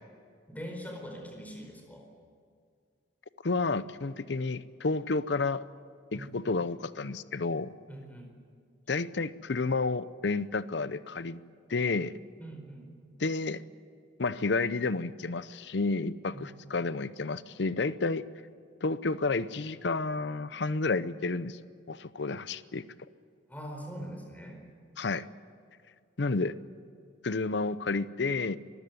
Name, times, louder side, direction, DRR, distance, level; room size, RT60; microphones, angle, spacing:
voice 1, 0.5-2.0 6.1-6.4 7.9-8.3 12.4-12.9 16.3-16.5 23.5-24.6, equal, 10° left, 2 dB, 4.5 m, -43 dB
voice 2, 3.4-5.6 6.1-7.7 8.9-11.4 11.7-12.1 13.2-13.6 14.2-18.2 18.8-21.6 21.9-22.8 25.0-25.3 26.2-26.5 27.2-28.6, left 3 dB, 65° left, 16 dB, 0.7 m, -30 dB
24.5 x 15.5 x 9.4 m, 2.2 s
head